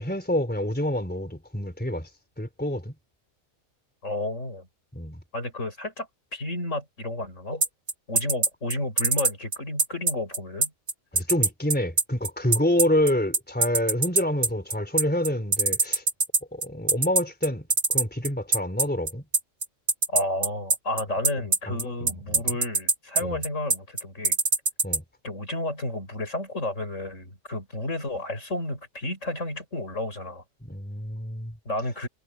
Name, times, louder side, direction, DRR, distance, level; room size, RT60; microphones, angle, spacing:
voice 1, 0.0-2.1 2.4-2.9 4.9-5.2 11.1-16.0 16.5-19.2 21.4-22.4 23.2-23.4 24.8-25.0 30.6-31.5, left 1 dB, 5° left, 3.9 m, -27 dB
voice 2, 4.0-4.7 5.3-6.1 6.3-7.6 8.1-10.7 20.1-24.4 25.2-30.4 31.7-32.1, left 1 dB, 65° left, 7.1 m, -31 dB
sound 1, 7.6-25.0, right 3 dB, 70° right, 3.0 m, -22 dB
omnidirectional pair, 1.4 m